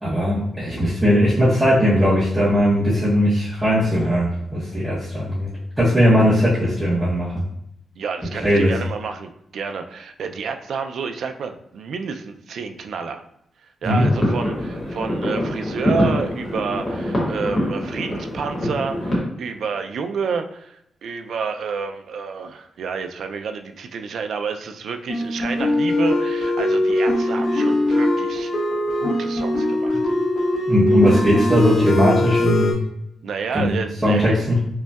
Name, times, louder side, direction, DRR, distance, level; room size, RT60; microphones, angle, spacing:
voice 1, 0.0-7.4 8.4-8.7 13.8-14.1 30.7-32.8 33.5-33.7 34.0-34.6, equal, 10° right, -11 dB, 0.8 m, -18 dB
voice 2, 8.0-13.2 13.6-28.5 29.0-30.0 33.2-34.4, right 5 dB, 60° right, 6 dB, 0.3 m, -29 dB
sound 1, 13.9-19.2, equal, 30° left, 1.0 m, -24 dB
sound 2, 25.1-32.7, left 1 dB, 70° left, 1.1 m, -21 dB
5.1 x 2.2 x 2.3 m, 0.76 s
wide cardioid pair, 180°, 0 cm